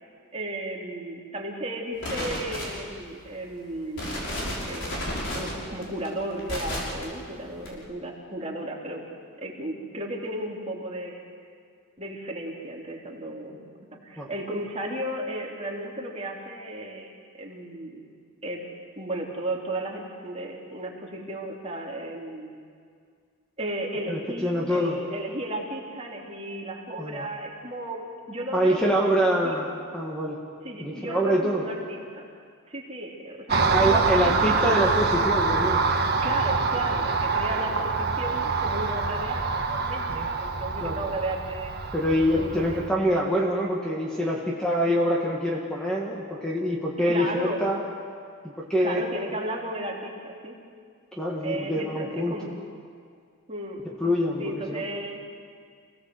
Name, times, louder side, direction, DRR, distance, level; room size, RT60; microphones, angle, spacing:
voice 1, 0.3-5.0 5.3-9.0 9.4-11.2 12.0-13.6 14.0-18.0 18.4-18.6 19.0-22.5 23.6-29.5 30.6-32.3 32.7-34.7 36.2-41.7 42.3-42.9 47.1-47.7 48.8-50.5 51.4-52.5 53.5-53.8 54.4-55.2, right 1 dB, 30° right, -2 dB, 3.3 m, -34 dB
sound 1, 2.0-3.0 3.5-3.6 3.9-7.0 7.6-7.7, left 1 dB, 55° left, 6.2 m, -32 dB
voice 2, 24.1-25.0 27.0-27.3 28.5-29.7 29.9-30.4 30.8-31.6 33.7-35.8 40.1-40.3 40.8-41.0 41.9-47.9 48.6-49.0 51.2-52.4 54.0-54.8, equal, 5° left, -3 dB, 2.0 m, -25 dB
Car passing by, 33.5-42.9, right 4 dB, 45° right, 1.6 m, -25 dB
28.0 x 18.0 x 7.9 m, 2.1 s
head